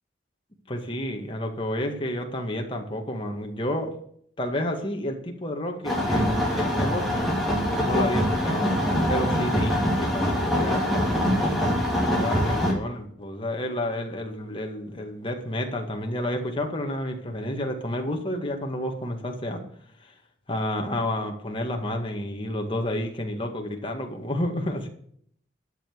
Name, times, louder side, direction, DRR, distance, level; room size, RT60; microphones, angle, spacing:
voice 1, 0.7-3.9 4.4-7.3 7.9-10.8 12.2-19.6 20.0-20.1 20.5-24.9, left 1 dB, 25° left, 2 dB, 2.0 m, -30 dB
sound 1, 5.8-12.7, equal, ahead, 2.8 m, -24 dB
12.0 x 7.1 x 7.8 m, 0.63 s
head